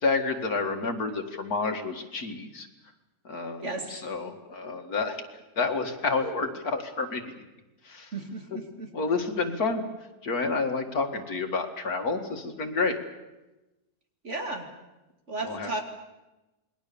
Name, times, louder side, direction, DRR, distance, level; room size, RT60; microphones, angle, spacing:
voice 1, 0.0-2.7 3.2-5.2 5.6-7.3 7.8-8.1 8.5-8.6 8.9-9.8 10.2-13.0 15.4-15.7, left 4 dB, 70° left, 5 dB, 2.5 m, -29 dB
voice 2, 3.6-4.0 8.1-8.9 14.2-14.7 15.3-15.8, right 2 dB, 50° right, 4 dB, 3.0 m, -34 dB
28.0 x 21.0 x 7.1 m, 1.0 s
omnidirectional pair, 1.6 m